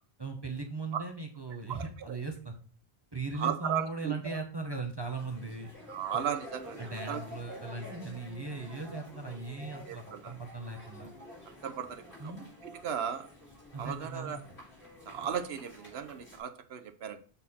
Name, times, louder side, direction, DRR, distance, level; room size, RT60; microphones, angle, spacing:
voice 1, 0.2-2.5 3.1-5.7 6.8-11.1 12.2-12.4 13.7-14.4, right 3 dB, 25° right, 3 dB, 0.9 m, -38 dB
voice 2, 1.7-2.2 3.3-4.4 5.9-7.2 7.5-7.6 9.9-10.3 11.6-13.3 13.8-14.4 15.1-17.2, right 8 dB, 80° right, 8 dB, 1.0 m, -36 dB
sound 1, 5.1-16.4, left 1 dB, 85° left, 4.3 m, -49 dB
7.0 x 4.2 x 4.2 m, 0.41 s
omnidirectional pair, 1.1 m